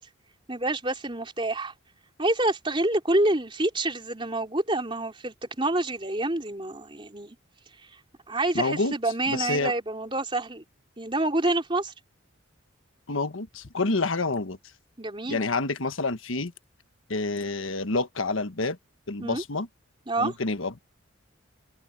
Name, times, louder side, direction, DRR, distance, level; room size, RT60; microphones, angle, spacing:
voice 1, 0.5-1.7 2.2-7.4 8.3-10.6 11.0-11.9 15.0-15.4 19.2-19.4 20.1-20.3, right 2 dB, 25° right, 3.7 m, -27 dB
voice 2, 8.5-8.9 9.3-9.7 13.1-14.6 15.3-16.5 17.1-18.8 19.1-19.7 20.2-20.7, left 3 dB, 70° left, 1.3 m, -28 dB
head